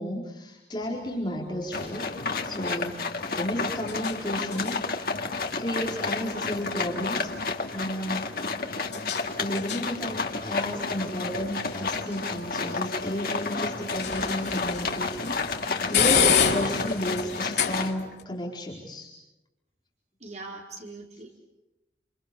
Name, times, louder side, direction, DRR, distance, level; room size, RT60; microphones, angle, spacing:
voice 1, 0.0-2.1 2.4-3.0 3.3-4.8 5.6-7.3 7.7-8.3 9.4-15.4 15.9-19.1, equal, 25° left, -2 dB, 4.4 m, -32 dB
sound 1, 0.8-18.2, left 7 dB, 80° left, 3.7 m, -32 dB
sound 2, 1.7-17.9, left 4 dB, 55° left, 2.1 m, -31 dB
voice 2, 20.2-21.4, right 3 dB, 40° right, 1 dB, 4.6 m, -41 dB
29.0 x 28.5 x 7.0 m, 0.96 s
head